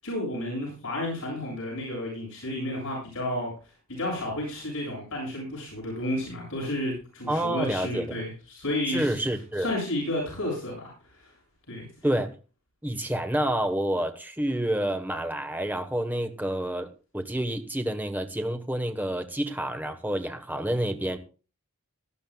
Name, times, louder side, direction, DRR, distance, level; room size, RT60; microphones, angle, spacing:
voice 1, 0.0-3.5 3.9-9.2 9.6-10.9 11.2-11.3 11.7-11.9, left 1 dB, 65° left, 7.6 m, -31 dB
voice 2, 7.3-8.2 8.9-9.7 12.0-12.3 12.8-21.2, right 1 dB, 10° right, 1.3 m, -28 dB
18.5 x 12.5 x 2.4 m
head